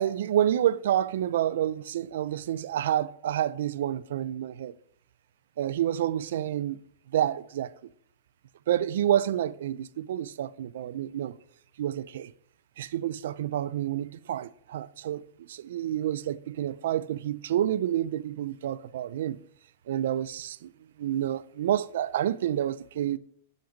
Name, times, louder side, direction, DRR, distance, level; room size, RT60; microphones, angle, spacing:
voice 1, 0.0-4.7 5.6-6.8 7.1-7.7 8.7-11.4 11.8-12.3 12.8-19.4 19.9-20.7 21.0-23.2, right 11 dB, 65° right, 0.4 m, -29 dB
7.9 x 5.2 x 7.1 m
supercardioid pair, 175°, 0 cm